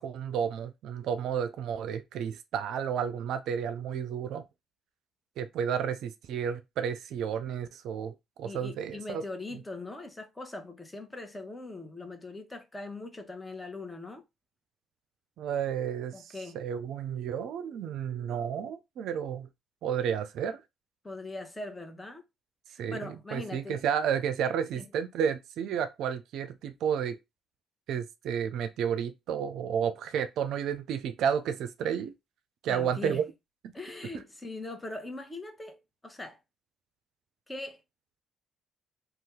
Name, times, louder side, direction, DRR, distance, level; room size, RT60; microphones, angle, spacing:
voice 1, 0.0-4.4 5.4-9.2 15.4-19.5 19.8-20.6 22.8-27.2 27.9-32.1 32.6-33.2 33.6-33.7, right 8 dB, 70° right, 0.4 m, -31 dB
voice 2, 8.4-14.2 16.1-16.6 21.0-22.2 22.9-23.8 24.7-24.9 32.7-33.2 33.7-36.4 37.5-37.8, left 2 dB, 20° left, 0.9 m, -41 dB
2.7 x 2.3 x 3.5 m
hypercardioid pair, 50°, 0 cm